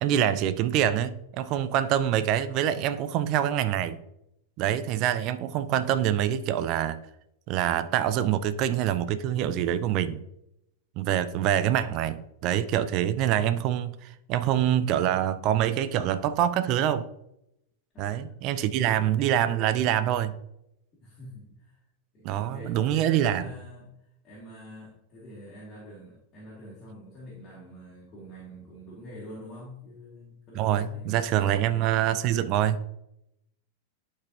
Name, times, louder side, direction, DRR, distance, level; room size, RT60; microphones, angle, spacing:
voice 1, 0.0-4.0 4.6-7.0 7.5-10.2 11.0-17.1 18.0-20.4 22.2-23.4 30.6-32.8, right 11 dB, 40° right, 0.4 m, -25 dB
voice 2, 17.9-18.3 18.9-19.1 21.0-21.8 22.1-31.9, equal, 25° left, 2.6 m, -45 dB
11.5 x 4.7 x 2.8 m
figure-of-eight pair, 90°, 0 cm